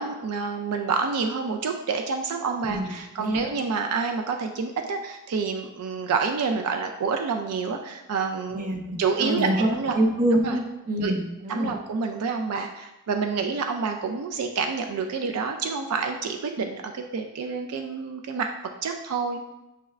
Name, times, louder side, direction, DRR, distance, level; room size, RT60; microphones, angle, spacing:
voice 1, 0.0-8.7 9.0-10.0 10.4-10.6 11.0-11.1 11.5-18.5 18.8-19.4, right 5 dB, 75° right, 4 dB, 0.4 m, -28 dB
voice 2, 2.7-3.4 8.5-11.7, right 1 dB, 40° right, 1 dB, 0.6 m, -26 dB
6.7 x 2.3 x 3.1 m, 0.96 s
head